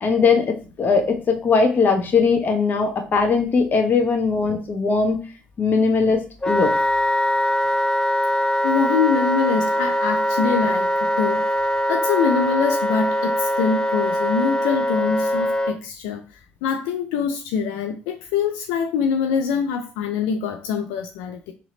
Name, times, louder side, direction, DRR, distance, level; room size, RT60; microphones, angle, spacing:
voice 1, 0.0-5.2 5.6-6.2 6.5-6.7, left 4 dB, 45° left, 1.0 m, -19 dB
Wind instrument woodwind instrument, 6.4-15.8, equal, 15° left, 0.4 m, -22 dB
voice 2, 8.6-10.9 11.2-11.4 11.9-16.2 16.6-21.5, left 6 dB, 85° left, 0.4 m, -24 dB
3.3 x 2.9 x 3.8 m
supercardioid pair, 65°, 4 cm